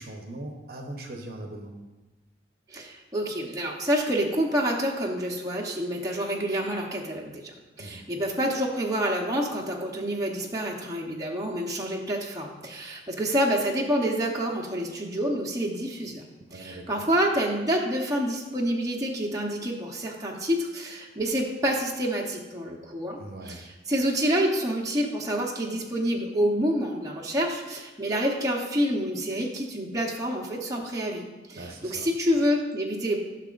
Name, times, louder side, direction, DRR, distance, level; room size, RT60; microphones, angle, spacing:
voice 1, 0.0-1.8 7.8-8.0 16.5-17.1 23.2-23.6 31.6-32.1, right 1 dB, 55° right, 3 dB, 0.9 m, -40 dB
voice 2, 2.7-7.5 7.8-16.2 16.5-23.2 23.4-33.2, equal, 20° right, -2 dB, 0.9 m, -28 dB
12.5 x 6.0 x 2.5 m, 1.2 s
head